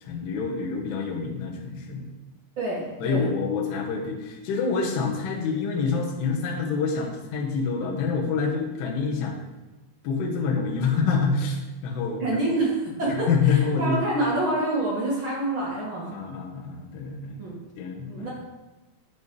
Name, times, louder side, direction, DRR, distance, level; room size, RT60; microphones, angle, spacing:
voice 1, 0.0-2.1 3.0-9.4 10.0-12.4 13.0-14.0 16.1-17.4 17.8-18.3, left 5 dB, 75° left, 0 dB, 3.2 m, -27 dB
voice 2, 2.6-3.3 12.2-16.1 17.4-17.6 18.1-18.3, right 2 dB, 50° right, -6 dB, 1.5 m, -27 dB
11.0 x 5.1 x 4.8 m, 1.1 s
omnidirectional pair, 5.1 m